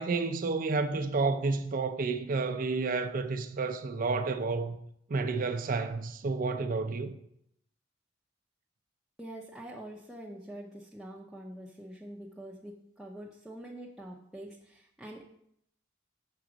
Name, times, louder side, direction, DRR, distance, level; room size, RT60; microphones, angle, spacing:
voice 1, 0.0-4.8 5.1-7.2, right 4 dB, 45° right, 0.5 m, -30 dB
voice 2, 9.2-15.2, right 1 dB, ahead, 0.6 m, -45 dB
6.2 x 3.8 x 6.0 m
head